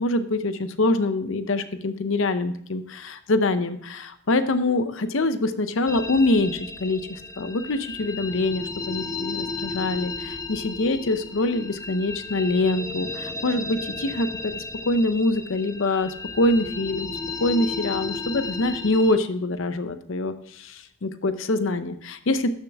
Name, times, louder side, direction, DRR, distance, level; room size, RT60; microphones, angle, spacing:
voice 1, 0.0-17.1 17.4-22.5, left 2 dB, 60° left, 11 dB, 0.7 m, -25 dB
sound 1, 5.9-19.1, left 3 dB, 15° left, 0.5 m, -34 dB
12.5 x 6.6 x 3.5 m, 0.66 s
head